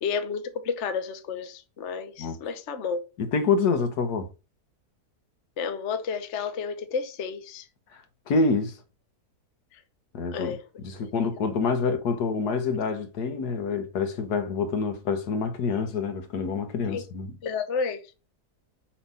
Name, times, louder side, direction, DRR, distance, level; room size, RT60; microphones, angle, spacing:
voice 1, 0.0-3.0 5.6-7.7 9.7-9.8 10.3-10.6 11.0-11.3 16.9-17.0 17.4-18.0, left 6 dB, 50° left, 1.0 m, -31 dB
voice 2, 3.2-4.3 7.9-8.8 10.1-10.6 10.8-17.3, left 4 dB, 70° left, 1.6 m, -27 dB
7.1 x 3.3 x 5.5 m
omnidirectional pair, 1.8 m